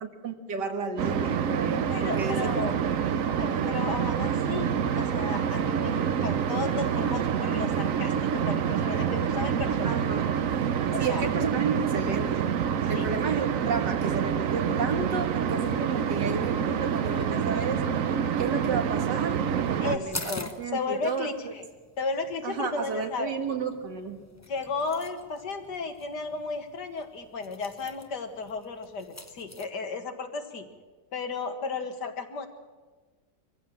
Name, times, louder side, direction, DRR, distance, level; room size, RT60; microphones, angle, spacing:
voice 1, 0.0-2.6 9.8-10.3 11.0-12.5 12.9-17.8 18.4-21.5 22.4-24.2, right 5 dB, 85° right, 5 dB, 2.3 m, -32 dB
sound 1, 1.0-20.0, right 8 dB, 60° right, 1.1 m, -27 dB
voice 2, 1.9-2.8 3.4-10.0 10.9-11.3 12.9-13.1 16.2-16.3 19.8-21.6 22.0-23.3 24.5-30.7 31.1-32.5, left 4 dB, 75° left, 6 dB, 2.3 m, -34 dB
sound 2, 20.1-29.7, left 2 dB, 15° left, 0.7 m, -45 dB
23.0 x 15.0 x 7.6 m, 1.4 s
omnidirectional pair, 1.8 m